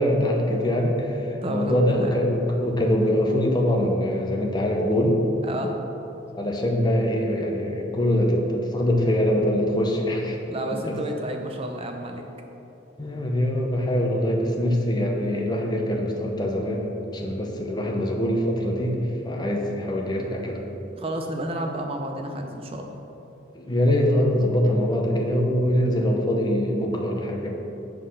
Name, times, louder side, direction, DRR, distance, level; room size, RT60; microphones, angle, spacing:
voice 1, 0.0-5.2 6.4-10.4 10.9-11.0 13.0-20.6 23.5-27.5, equal, 20° left, 1 dB, 0.7 m, -23 dB
voice 2, 1.4-2.2 5.4-5.8 10.5-12.2 21.0-23.0, right 1 dB, 30° right, 3 dB, 0.5 m, -31 dB
8.1 x 3.9 x 6.3 m, 3.0 s
head